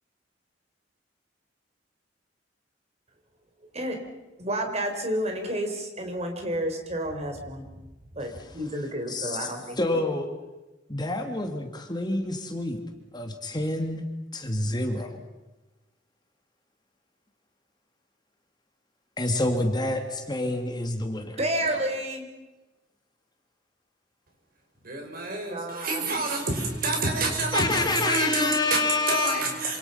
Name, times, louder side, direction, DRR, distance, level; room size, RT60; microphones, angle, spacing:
voice 1, 4.4-7.6 8.1-9.8 21.4-22.3 25.5-26.1, right 1 dB, 35° right, 4 dB, 4.4 m, -30 dB
voice 2, 9.1-9.5 9.8-10.3 10.9-12.8 13.1-15.2 19.2-21.4 27.5-29.5, left 2 dB, 25° left, 5 dB, 2.4 m, -27 dB
voice 3, 24.8-28.8 29.1-29.8, right 3 dB, 50° right, 3 dB, 5.4 m, -28 dB
27.0 x 27.0 x 5.7 m, 1.1 s
head